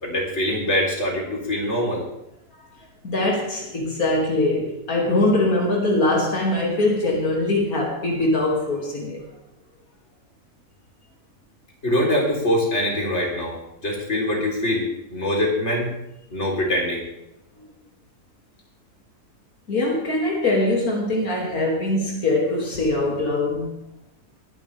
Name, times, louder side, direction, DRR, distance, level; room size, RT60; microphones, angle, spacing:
voice 1, 0.0-2.0 11.8-13.6 13.8-14.8 15.1-15.9 16.3-17.0, left 1 dB, 50° left, -2 dB, 4.0 m, -23 dB
voice 2, 3.0-9.2 19.7-23.7, left 2 dB, 85° left, -2 dB, 2.9 m, -22 dB
21.0 x 11.0 x 3.4 m, 0.85 s
omnidirectional pair, 1.5 m